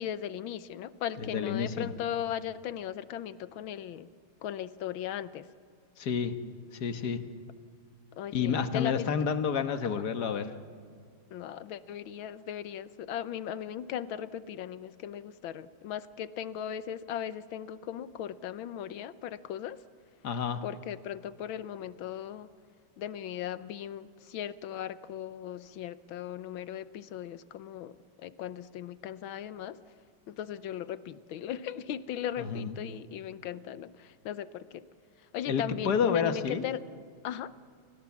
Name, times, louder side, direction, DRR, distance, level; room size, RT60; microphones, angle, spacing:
voice 1, 0.0-4.1 4.4-5.5 8.1-9.1 9.8-10.0 11.3-19.8 20.6-22.5 23.0-29.8 30.3-34.8 35.3-36.8 37.2-37.5, left 10 dB, 75° left, 15 dB, 1.6 m, -38 dB
voice 2, 1.2-1.9 6.0-6.3 6.7-7.2 8.3-10.5 20.2-20.6 32.4-32.7 35.5-36.6, left 6 dB, 55° left, 9 dB, 1.7 m, -29 dB
29.5 x 23.5 x 7.3 m, 2.2 s
omnidirectional pair, 2.3 m